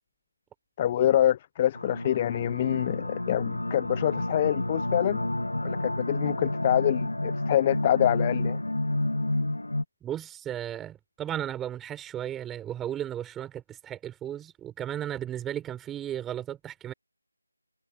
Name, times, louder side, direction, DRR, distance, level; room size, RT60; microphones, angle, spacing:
voice 1, 0.8-5.2 5.6-8.6, left 11 dB, 20° left, 0.8 m, -26 dB
sound 1, 1.7-9.8, left 1 dB, 80° left, 2.6 m, -30 dB
voice 2, 10.0-16.9, right 11 dB, 5° right, 4.6 m, -35 dB
figure-of-eight pair, 160°, 0 cm